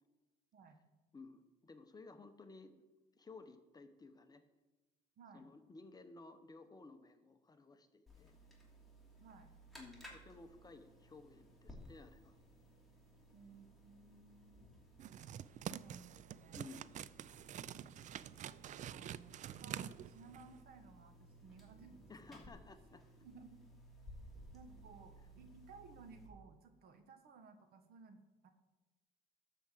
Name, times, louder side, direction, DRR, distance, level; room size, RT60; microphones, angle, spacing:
voice 1, 1.1-2.7 3.1-4.4 5.3-8.3 9.8-12.4 16.5-16.9 22.1-23.0, left 3 dB, 20° left, 8 dB, 0.9 m, -56 dB
voice 2, 5.2-5.5 9.2-9.5 13.3-14.7 15.7-16.6 18.7-22.0 22.4-22.5 23.2-23.6 24.5-28.5, right 4 dB, 65° right, 8 dB, 1.4 m, -59 dB
sound 1, 8.1-26.3, right 1 dB, ahead, 2.9 m, -59 dB
sound 2, 15.0-20.6, right 10 dB, 45° right, 0.4 m, -47 dB
12.0 x 4.9 x 7.6 m, 1.1 s
cardioid pair, 110°, 17 cm